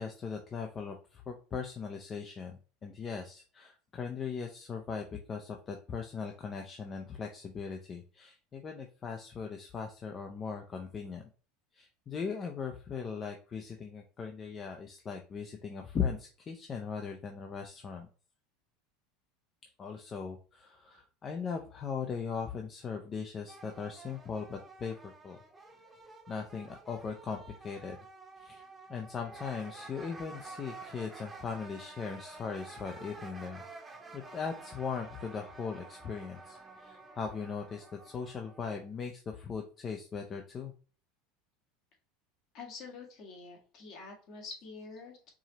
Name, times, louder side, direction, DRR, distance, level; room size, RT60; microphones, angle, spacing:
voice 1, 0.0-11.3 11.7-18.1 19.8-25.4 26.3-28.0 28.4-28.6 28.9-33.6 34.1-40.7, left 6 dB, 30° left, 3 dB, 0.6 m, -39 dB
sound 1, 23.5-38.9, right 3 dB, 15° right, 0.9 m, -50 dB
voice 2, 42.5-45.3, left 4 dB, 50° left, 0 dB, 1.7 m, -46 dB
4.7 x 2.8 x 2.9 m, 0.38 s
supercardioid pair, 105°, 0 cm